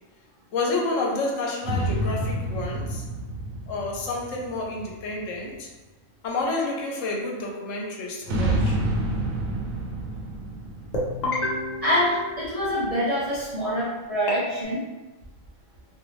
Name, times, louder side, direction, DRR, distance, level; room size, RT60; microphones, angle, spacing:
voice 1, 0.5-3.0 3.7-5.7 6.2-8.8, left 2 dB, 75° left, -1 dB, 0.9 m, -29 dB
sound 1, 1.6-5.3 8.2-12.0, right 1 dB, 85° right, 1.0 m, -29 dB
sound 2, 10.9-13.1 14.3-14.6, left 2 dB, 50° left, 0.5 m, -30 dB
voice 2, 11.8-14.8, equal, 35° right, -10 dB, 0.6 m, -25 dB
2.6 x 2.5 x 3.0 m, 1.1 s
omnidirectional pair, 1.4 m